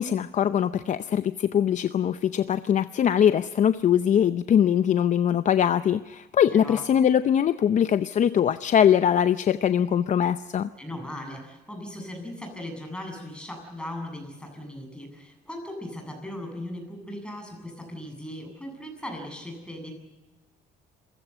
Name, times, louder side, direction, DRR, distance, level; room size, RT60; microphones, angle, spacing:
voice 1, 0.0-10.7, left 9 dB, 45° left, 12 dB, 0.7 m, -22 dB
voice 2, 6.5-6.9 10.8-19.9, left 1 dB, 5° left, 3 dB, 8.0 m, -38 dB
27.0 x 16.5 x 8.1 m, 1.1 s
cardioid pair, 110°, 17 cm